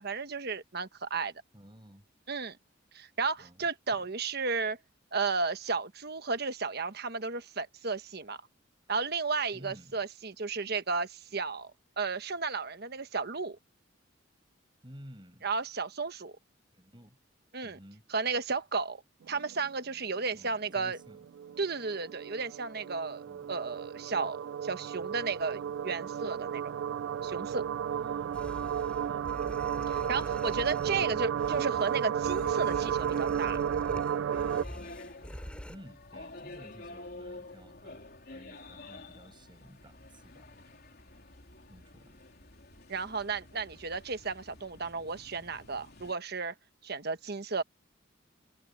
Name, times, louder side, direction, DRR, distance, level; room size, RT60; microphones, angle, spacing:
voice 1, 0.0-1.3 2.3-2.6 2.9-4.8 5.1-8.4 8.9-11.7 12.0-13.6 15.4-16.3 17.5-17.8 18.1-19.0 19.3-21.0 21.6-26.7 27.2-27.6 29.9-33.6 42.9-46.5 46.8-47.6, right 4 dB, 55° right, 1.3 m, -33 dB
voice 2, 1.5-2.1 3.4-4.1 9.5-10.0 14.8-15.5 16.7-17.2 17.6-18.0 20.3-21.3 23.3-23.6 27.9-28.6 29.1-29.5 30.9-31.2 35.7-41.0 41.7-42.2, equal, 25° right, 7.9 m, -53 dB
sound 1, 19.3-19.9 20.2-20.3 20.5-34.6, right 8 dB, 75° right, 0.3 m, -33 dB
sound 2, 28.3-35.8, equal, 5° left, 6.4 m, -45 dB
sound 3, 34.3-46.1, left 2 dB, 55° left, 3.9 m, -49 dB
head